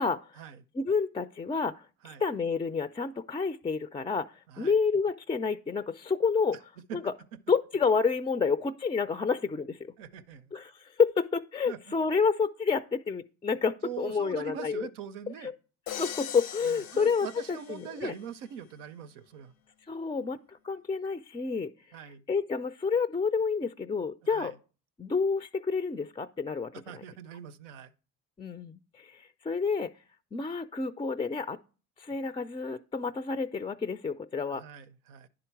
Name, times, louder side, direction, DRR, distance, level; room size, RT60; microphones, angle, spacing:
voice 1, 0.8-4.3 4.6-6.6 6.9-7.1 7.5-9.8 10.5-14.9 15.4-15.5 16.0-18.1 19.9-21.7 22.3-24.5 25.0-26.7 28.4-29.9 30.3-31.6 32.0-34.6, left 5 dB, 15° left, 0.3 m, -29 dB
voice 2, 10.0-10.5 11.7-11.8 13.8-15.5 16.6-19.5 21.9-22.2 24.2-24.6 26.9-27.9 34.5-35.3, right 9 dB, 90° right, 0.6 m, -43 dB
Crash cymbal, 15.9-18.1, left 9 dB, 85° left, 0.7 m, -41 dB
10.0 x 3.8 x 4.5 m
hypercardioid pair, 60°, 36 cm